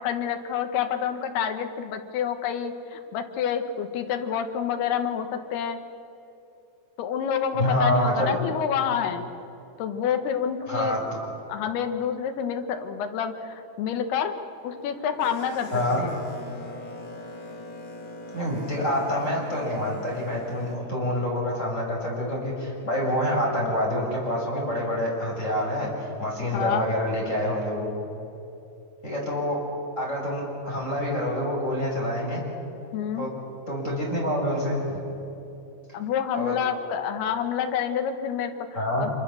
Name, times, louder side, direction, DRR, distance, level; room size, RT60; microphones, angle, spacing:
voice 1, 0.0-5.8 7.0-9.3 9.8-11.1 11.5-14.3 14.6-15.7 16.0-16.1 26.5-26.9 32.9-33.3 35.9-39.1, left 8 dB, 65° left, 7 dB, 3.1 m, -28 dB
voice 2, 7.6-8.4 10.7-11.0 15.7-16.1 18.3-27.9 29.0-29.6 30.0-32.4 33.2-33.3 33.7-35.0 36.4-36.5 38.7-39.0, left 1 dB, 15° left, -2 dB, 6.0 m, -27 dB
Boat Water vehicle, 14.6-20.8, left 1 dB, 45° left, 4.4 m, -41 dB
26.5 x 24.5 x 7.0 m, 2.8 s
omnidirectional pair, 5.5 m